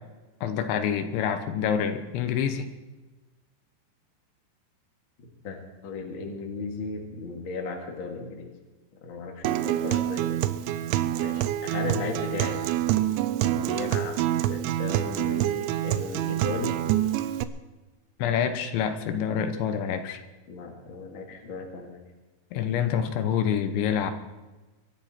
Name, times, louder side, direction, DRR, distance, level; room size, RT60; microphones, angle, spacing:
voice 1, 0.4-2.7 18.2-20.2 22.5-24.1, left 8 dB, 80° left, 8 dB, 3.3 m, -27 dB
voice 2, 5.4-8.5 9.0-10.4 11.2-12.6 13.4-14.2 14.5-16.8 20.5-22.0, left 4 dB, 40° left, 1 dB, 2.0 m, -35 dB
Acoustic guitar, 9.4-17.4, right 13 dB, 85° right, 3.0 m, -26 dB
23.5 x 12.5 x 4.4 m, 1.2 s
omnidirectional pair, 5.3 m